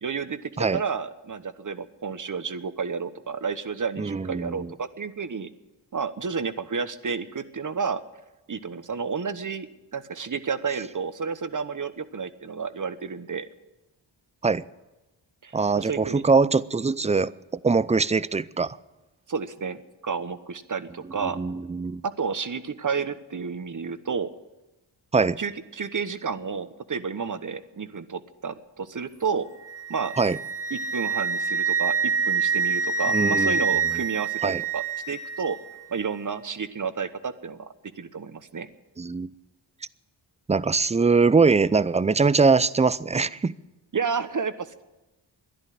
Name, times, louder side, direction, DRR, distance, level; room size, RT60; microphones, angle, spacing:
voice 1, 0.0-5.5 5.9-8.0 8.5-9.7 9.9-13.5 15.4-16.2 19.3-21.4 22.0-24.3 25.4-29.5 29.9-30.1 30.7-35.6 35.9-38.7 43.9-44.8, right 5 dB, 40° right, 12 dB, 1.1 m, -31 dB
voice 2, 4.0-4.7 14.4-14.6 15.5-17.3 17.6-18.8 21.2-22.0 25.1-25.4 30.2-30.4 33.1-33.7 34.4-34.6 39.0-39.3 40.5-43.5, right 4 dB, 15° right, 18 dB, 0.5 m, -22 dB
Wind instrument woodwind instrument, 29.7-35.6, right 5 dB, 5° left, 2.5 m, -26 dB
13.0 x 10.5 x 9.3 m, 1.0 s
cardioid pair, 45°, 47 cm